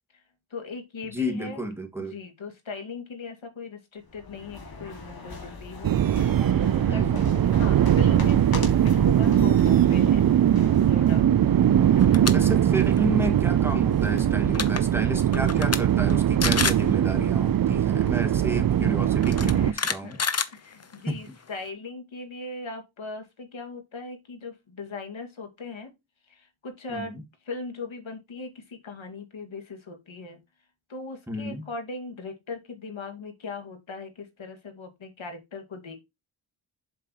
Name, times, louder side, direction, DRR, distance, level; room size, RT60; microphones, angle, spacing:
voice 1, 0.5-1.7 2.0-5.9 6.6-10.2 10.9-11.3 11.9-12.3 19.5-25.9 26.3-30.4 30.9-36.0, left 3 dB, 70° left, 2.1 m, -39 dB
voice 2, 1.1-2.1 6.9-7.6 12.2-20.2 21.0-21.3 26.9-27.2 31.3-31.7, right 1 dB, 5° right, 1.8 m, -32 dB
sound 1, 4.1-11.2, left 3 dB, 45° left, 2.0 m, -39 dB
sound 2, 5.8-19.7, right 10 dB, 50° right, 0.5 m, -21 dB
sound 3, 12.0-12.3 12.7-13.0 14.2-14.3 14.5-14.8 15.3-15.8 16.1-16.2 16.4-16.9 18.1-18.2 19.2-21.1, left 5 dB, 30° left, 0.7 m, -27 dB
7.5 x 5.3 x 2.9 m
cardioid pair, 65°, 49 cm